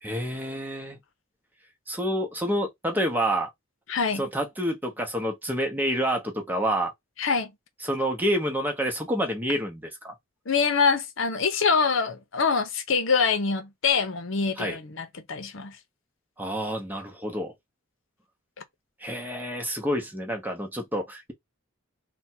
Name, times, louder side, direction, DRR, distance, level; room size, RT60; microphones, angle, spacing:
voice 1, 0.0-1.0 1.9-3.5 4.1-6.9 7.8-10.1 14.6-14.8 16.4-17.5 19.0-21.3, equal, 10° right, 0.8 m, -28 dB
voice 2, 3.9-4.3 7.2-7.5 10.5-15.8, left 5 dB, 65° left, 0.8 m, -25 dB
3.4 x 2.3 x 4.3 m
head